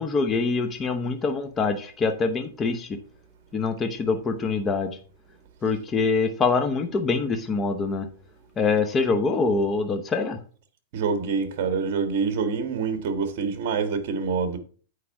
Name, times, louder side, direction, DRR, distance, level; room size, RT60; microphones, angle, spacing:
voice 1, 0.0-3.0 3.5-5.0 5.6-8.1 8.6-10.4, left 4 dB, 20° left, 0.8 m, -24 dB
voice 2, 10.9-14.6, right 5 dB, 50° right, 1.7 m, -26 dB
8.6 x 4.7 x 4.7 m
hypercardioid pair, 145°, 0 cm